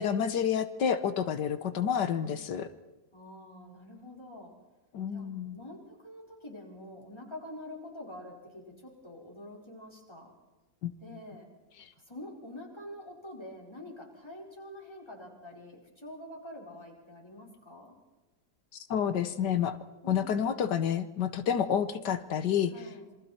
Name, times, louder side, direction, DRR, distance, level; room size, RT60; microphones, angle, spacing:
voice 1, 0.0-2.7 4.9-5.6 10.8-10.9 18.9-19.8 20.1-22.7, left 8 dB, 85° left, 11 dB, 1.7 m, -29 dB
voice 2, 2.1-2.4 3.1-4.5 5.1-10.3 11.0-11.5 11.9-18.0 20.0-20.6 22.7-23.1, left 1 dB, 15° left, -2 dB, 5.2 m, -46 dB
27.5 x 24.0 x 4.4 m, 1.1 s
omnidirectional pair, 1.8 m